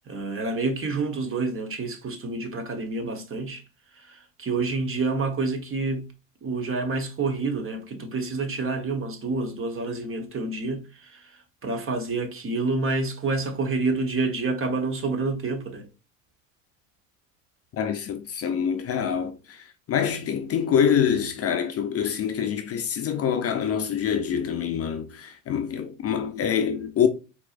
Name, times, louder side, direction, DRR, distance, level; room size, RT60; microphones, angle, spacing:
voice 1, 0.1-3.6 3.9-6.1 6.4-15.8, right 3 dB, 30° right, 1.2 m, -28 dB
voice 2, 17.7-27.1, left 8 dB, 35° left, 0.6 m, -25 dB
4.4 x 3.0 x 2.5 m
hypercardioid pair, 80°, 41 cm